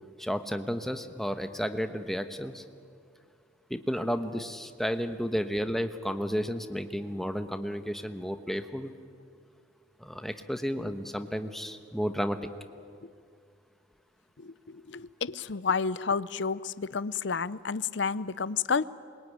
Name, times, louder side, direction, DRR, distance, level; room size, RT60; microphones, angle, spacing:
voice 1, 0.2-2.6 3.7-8.9 10.0-12.4, equal, ahead, 8 dB, 1.1 m, -32 dB
voice 2, 14.4-18.8, left 5 dB, 65° left, 17 dB, 0.6 m, -30 dB
27.0 x 22.0 x 9.5 m, 2.3 s
head